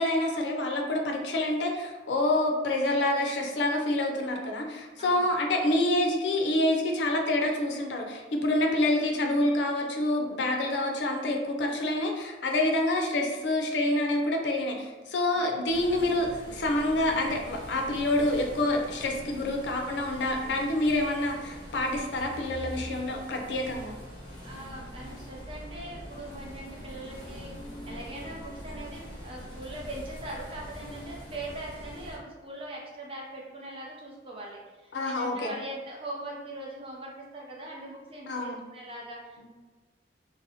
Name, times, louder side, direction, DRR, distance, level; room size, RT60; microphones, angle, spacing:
voice 1, 0.0-23.9 34.9-35.6 38.3-38.6 39.4-39.5, left 1 dB, 80° left, 2 dB, 0.4 m, -27 dB
voice 2, 5.0-5.3 15.3-15.6 24.4-39.5, right 1 dB, 30° right, -3 dB, 0.5 m, -41 dB
sound 1, 15.7-32.2, equal, 25° left, 0.6 m, -43 dB
2.6 x 2.0 x 2.7 m, 1.3 s
head